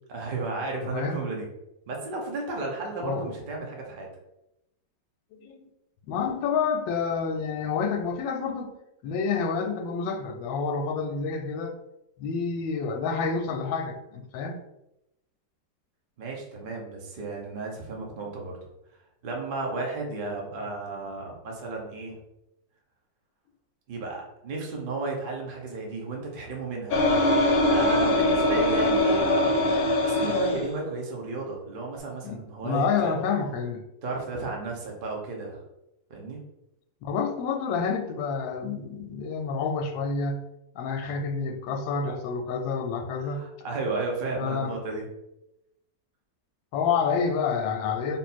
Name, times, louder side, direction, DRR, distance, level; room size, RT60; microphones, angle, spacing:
voice 1, 0.1-1.5 1.9-4.1 16.2-18.6 19.2-22.2 23.9-27.1 27.6-29.6 30.0-33.1 34.0-35.6 36.1-36.4 43.2-45.1, right 3 dB, 45° right, 0 dB, 0.7 m, -33 dB
voice 2, 0.8-1.2 3.0-3.3 5.4-5.6 6.1-8.8 9.0-11.7 12.2-14.6 32.2-33.8 37.0-40.4 40.7-43.4 44.4-44.7 46.7-48.2, left 5 dB, 90° left, 5 dB, 1.3 m, -28 dB
sound 1, 26.9-30.6, left 1 dB, 60° left, 1.1 m, -22 dB
3.7 x 2.5 x 4.2 m, 0.88 s
omnidirectional pair, 2.0 m